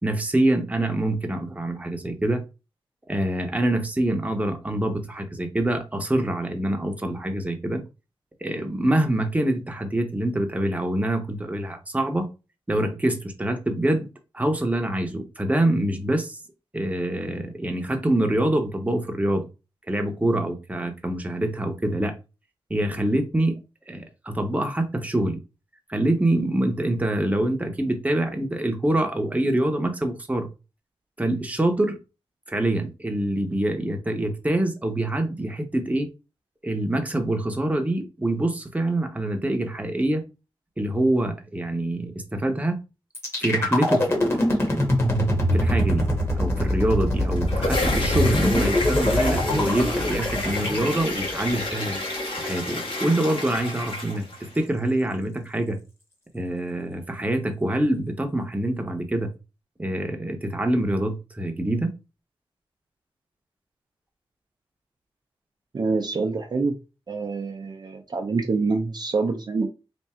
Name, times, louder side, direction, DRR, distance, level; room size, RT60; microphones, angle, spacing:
voice 1, 0.0-2.4 3.1-7.8 8.4-12.3 12.7-14.1 14.3-16.4 16.7-19.5 19.9-22.2 22.7-23.6 23.9-25.4 25.9-30.5 31.2-32.0 32.5-36.1 36.6-40.2 40.8-42.8 43.4-44.7 45.5-46.1 46.4-52.0 52.4-55.8 56.3-59.3 59.8-61.9, right 1 dB, 15° right, 0.9 m, -25 dB
sound 1, 43.1-53.1, left 1 dB, 25° left, 1.6 m, -24 dB
sound 2, 47.2-54.6, left 2 dB, 65° left, 1.6 m, -30 dB
voice 2, 65.7-66.8 67.1-69.7, right 4 dB, 50° right, 0.6 m, -26 dB
3.5 x 2.6 x 4.3 m
wide cardioid pair, 85°, 10 cm